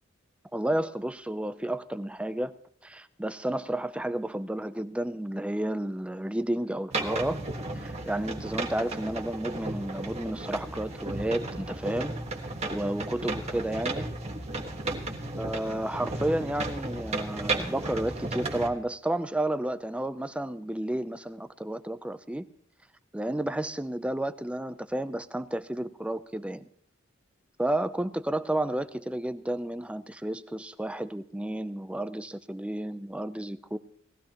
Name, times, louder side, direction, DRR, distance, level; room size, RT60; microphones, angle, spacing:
voice 1, 0.5-2.5 2.8-7.4 7.7-12.1 12.7-14.1 15.4-22.5 23.1-26.7 27.6-33.8, right 1 dB, 5° right, 12 dB, 0.5 m, -31 dB
sound 1, 6.9-18.7, right 2 dB, 35° right, 1.5 m, -34 dB
19.5 x 15.5 x 3.0 m, 0.62 s
head